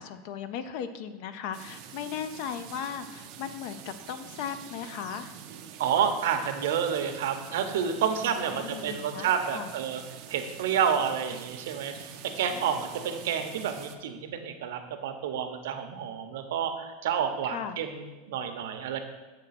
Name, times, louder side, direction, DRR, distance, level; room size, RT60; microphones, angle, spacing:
voice 1, 0.0-5.4 8.2-9.7 12.5-12.9 17.4-17.8, left 8 dB, 40° left, 11 dB, 0.4 m, -37 dB
sound 1, 1.5-14.0, right 9 dB, 35° right, 0.5 m, -46 dB
voice 2, 5.8-10.0 10.3-19.0, right 8 dB, 70° right, 7 dB, 0.7 m, -29 dB
7.6 x 3.3 x 5.7 m, 1.2 s
supercardioid pair, 180°, 0 cm